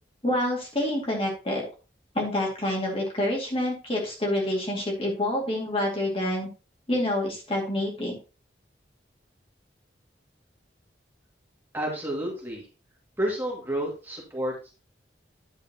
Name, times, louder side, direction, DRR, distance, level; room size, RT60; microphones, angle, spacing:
voice 1, 0.2-1.6 2.1-6.5 6.9-8.2, left 1 dB, 30° left, -1 dB, 2.3 m, -27 dB
voice 2, 11.7-12.7 13.2-14.8, right 1 dB, 10° right, -2 dB, 2.3 m, -30 dB
10.0 x 7.0 x 2.9 m, 0.33 s
head